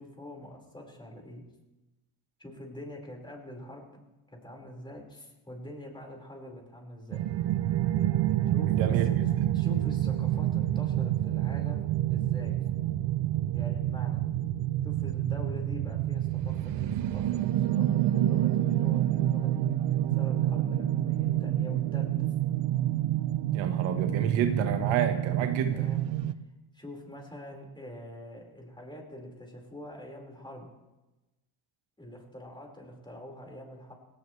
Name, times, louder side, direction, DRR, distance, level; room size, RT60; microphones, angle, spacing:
voice 1, 0.0-1.4 2.4-3.9 4.3-7.2 8.5-9.0 9.5-12.5 13.5-14.2 14.8-19.6 20.1-22.1 25.7-26.0 26.7-30.7 32.0-33.9, left 1 dB, 10° left, 0 dB, 5.2 m, -45 dB
sound 1, 7.1-26.3, right 13 dB, 65° right, 0.8 m, -28 dB
voice 2, 8.7-9.3 23.5-25.9, right 8 dB, 90° right, 6 dB, 1.6 m, -29 dB
20.0 x 17.5 x 3.4 m, 1.1 s
supercardioid pair, 80°, 45 cm